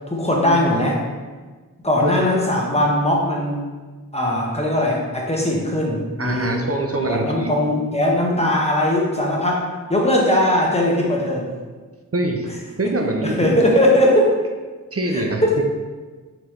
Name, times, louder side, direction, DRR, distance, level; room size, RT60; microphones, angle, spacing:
voice 1, 0.1-1.0 1.8-3.6 4.1-6.6 7.1-9.6 9.9-11.5 12.8-12.9 13.2-14.4 15.1-15.6, left 1 dB, 20° left, -2 dB, 0.9 m, -19 dB
voice 2, 6.2-7.5 12.1-12.5 12.8-13.7 14.9-15.6, right 2 dB, 45° right, 3 dB, 0.6 m, -24 dB
4.8 x 3.5 x 3.1 m, 1.4 s
wide cardioid pair, 40°, 34 cm